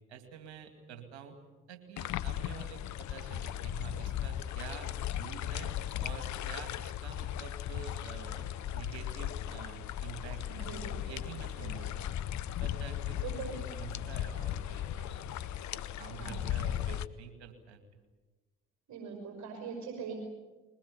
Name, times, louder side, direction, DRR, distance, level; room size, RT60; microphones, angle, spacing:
voice 1, 0.1-1.4 1.7-5.7 6.0-10.7 11.1-12.2 12.6-15.3 15.7-17.8, right 7 dB, 85° right, 7 dB, 2.3 m, -48 dB
sound 1, 2.0-17.1, left 11 dB, 60° left, 0.8 m, -37 dB
voice 2, 10.5-11.2 11.6-11.7 13.2-13.5 16.1-16.4 18.9-20.2, right 6 dB, 60° right, 3 dB, 5.8 m, -42 dB
22.0 x 20.0 x 9.8 m, 1.2 s
hypercardioid pair, 45°, 33 cm